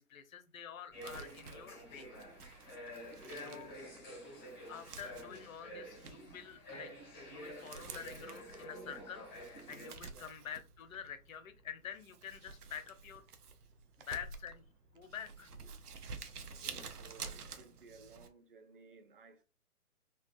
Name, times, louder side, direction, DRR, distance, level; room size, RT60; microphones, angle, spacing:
voice 1, 0.0-2.1 3.3-3.8 4.7-6.9 7.3-13.3 14.1-14.6 14.9-15.5, left 8 dB, 65° left, 0.8 m, -47 dB
sound 1, 0.9-9.9, equal, 15° left, 0.6 m, -49 dB
Crumpling crinkling, 0.9-18.3, right 5 dB, 85° right, 0.7 m, -51 dB
voice 2, 16.6-19.4, right 4 dB, 35° right, 0.6 m, -58 dB
3.7 x 2.3 x 2.5 m
figure-of-eight pair, 140°, 45 cm